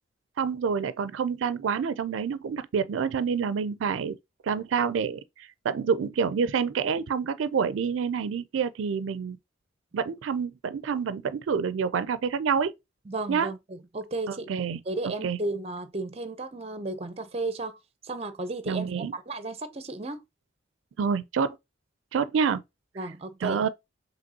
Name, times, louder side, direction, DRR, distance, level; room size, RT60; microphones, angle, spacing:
voice 1, 0.4-4.2 4.4-9.4 9.9-12.7 13.3-13.5 14.3-14.8 15.2-15.4 18.7-19.1 21.0-21.6 22.1-22.6 23.4-23.7, right 6 dB, 90° right, 0.4 m, -27 dB
voice 2, 13.1-14.5 14.9-17.8 18.0-20.2 23.0-23.6, right 2 dB, 35° right, 0.6 m, -34 dB
5.2 x 3.0 x 2.7 m
head